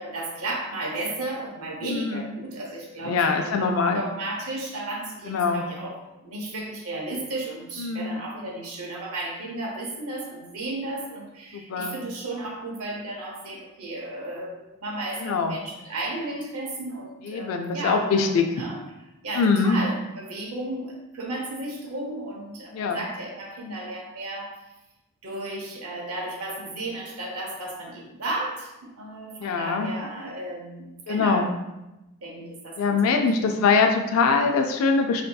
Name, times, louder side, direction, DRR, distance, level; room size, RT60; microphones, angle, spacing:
voice 1, 0.0-18.3 18.6-18.8 19.2-24.5 25.2-31.5 32.2-33.5, right 2 dB, 80° right, -1 dB, 0.8 m, -34 dB
voice 2, 1.8-2.3 3.0-4.0 5.3-5.7 7.8-8.2 11.5-12.0 15.2-15.6 17.2-18.5 19.3-19.8 22.7-23.0 29.4-29.9 31.1-31.5 32.8-35.2, left 4 dB, 70° left, 4 dB, 0.3 m, -23 dB
4.2 x 2.6 x 2.2 m, 0.97 s
head